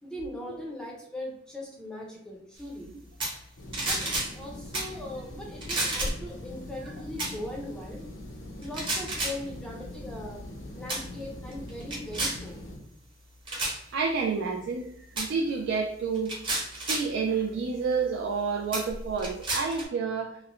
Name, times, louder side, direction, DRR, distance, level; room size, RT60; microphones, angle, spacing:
voice 1, 0.0-2.9 3.8-8.1 8.6-10.4 10.7-12.6, left 1 dB, 5° left, -2 dB, 0.4 m, -40 dB
sound 1, 3.2-3.4 3.7-4.3 4.7-4.9 5.6-6.3 7.2-7.4 8.6-9.4 10.2-10.5 10.9-11.1 11.5-12.4 13.5-13.8 15.2-15.3 16.1-17.1 17.9-18.0 18.7-19.9, right 2 dB, 25° right, 0.7 m, -31 dB
sound 2, 3.6-12.8, left 1 dB, 65° left, 0.5 m, -43 dB
voice 2, 13.9-16.3 16.7-20.4, right 5 dB, 75° right, 0 dB, 0.3 m, -29 dB
3.0 x 2.0 x 2.4 m, 0.76 s
head